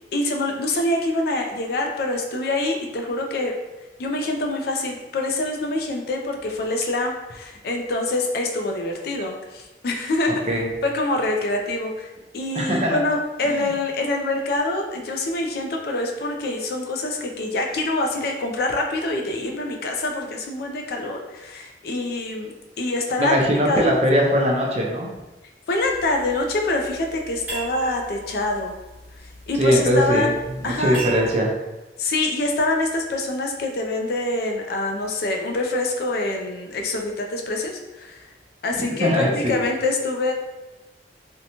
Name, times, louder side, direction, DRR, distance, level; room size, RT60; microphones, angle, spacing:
voice 1, 0.1-3.6 4.0-10.4 10.8-12.1 12.3-23.4 23.7-23.9 25.7-28.8 29.5-30.3 30.6-31.0 32.0-38.2 38.6-40.3, left 2 dB, 55° left, 2 dB, 0.3 m, -25 dB
voice 2, 12.5-13.0 13.5-13.6 23.2-25.1 29.6-30.3 30.6-31.5 39.0-39.6, equal, 35° right, -1 dB, 0.5 m, -20 dB
sound 1, 25.8-31.3, right 3 dB, 10° right, 1.0 m, -38 dB
2.7 x 2.1 x 2.8 m, 1.0 s
head